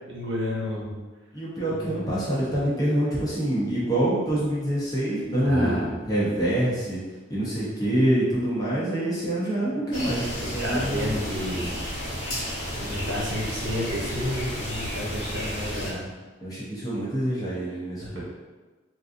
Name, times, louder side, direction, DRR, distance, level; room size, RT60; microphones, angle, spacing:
voice 1, 0.1-0.9 1.8-2.2 5.4-5.8 10.4-11.7 12.8-16.0 18.0-18.2, equal, 70° right, -4 dB, 0.9 m, -31 dB
voice 2, 1.3-7.0 7.3-11.2 16.4-18.2, right 1 dB, 20° left, -8 dB, 0.9 m, -26 dB
sound 1, 9.9-15.9, equal, 75° left, 1.0 m, -32 dB
3.8 x 2.6 x 2.6 m, 1.3 s
head